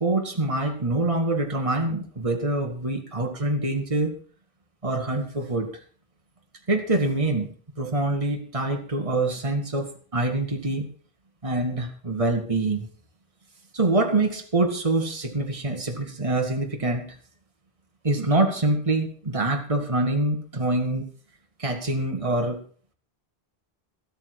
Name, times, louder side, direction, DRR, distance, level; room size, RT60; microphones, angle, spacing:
voice 1, 0.0-4.1 4.8-5.7 6.7-7.5 7.8-10.9 11.4-12.9 13.7-17.1 18.0-21.0 21.6-22.6, right 2 dB, 30° right, 3 dB, 1.9 m, -25 dB
13.5 x 12.5 x 4.7 m, 0.42 s
omnidirectional pair, 1.1 m